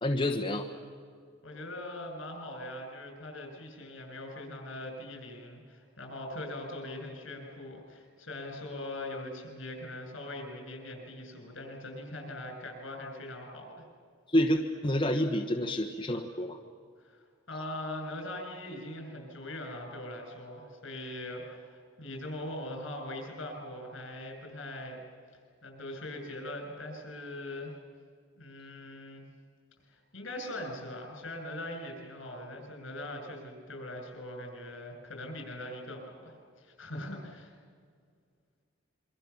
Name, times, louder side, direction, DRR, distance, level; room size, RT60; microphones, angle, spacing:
voice 1, 0.0-0.6 14.3-16.6, left 1 dB, 25° left, 2 dB, 1.1 m, -28 dB
voice 2, 1.4-13.9 17.0-17.2 17.5-25.0 25.6-27.7 28.4-29.3 29.9-37.5, left 1 dB, 65° left, 3 dB, 7.0 m, -41 dB
27.0 x 24.0 x 7.2 m, 2.1 s
head